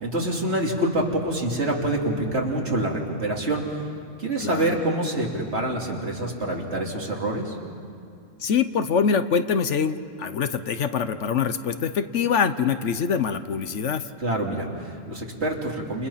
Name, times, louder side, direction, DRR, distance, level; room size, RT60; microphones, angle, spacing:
voice 1, 0.0-3.8 4.2-7.6 14.2-16.1, right 1 dB, 55° right, -1 dB, 3.3 m, -26 dB
voice 2, 4.4-4.8 8.4-14.0, left 6 dB, 65° left, 10 dB, 1.2 m, -24 dB
29.5 x 29.5 x 5.8 m, 2.5 s
omnidirectional pair, 1.3 m